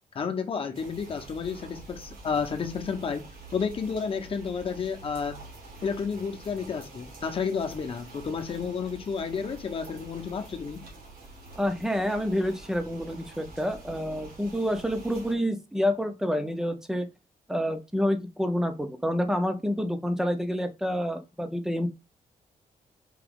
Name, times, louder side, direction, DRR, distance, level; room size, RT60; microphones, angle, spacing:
voice 1, 0.1-3.2 3.5-5.4 5.8-10.8, left 6 dB, 40° left, 0.8 m, -31 dB
sound 1, 0.7-15.3, right 3 dB, 90° right, 1.7 m, -47 dB
voice 2, 11.6-17.1 17.5-21.9, equal, 5° right, 0.5 m, -28 dB
4.8 x 2.9 x 3.5 m
wide cardioid pair, 165°, 14 cm